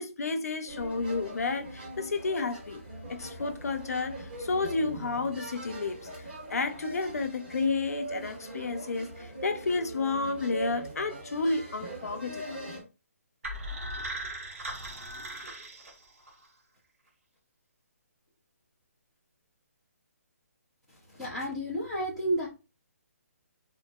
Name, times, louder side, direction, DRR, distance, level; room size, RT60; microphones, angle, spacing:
voice 1, 0.0-2.8 3.1-12.6, left 3 dB, 70° left, 0.6 m, -31 dB
sound 1, 0.7-12.8, right 1 dB, 40° right, 1.5 m, -41 dB
sound 2, 13.4-16.5, right 1 dB, 60° right, 1.0 m, -38 dB
voice 2, 21.1-22.5, right 1 dB, 5° right, 0.5 m, -31 dB
3.8 x 2.6 x 2.2 m
hypercardioid pair, 175°, 8 cm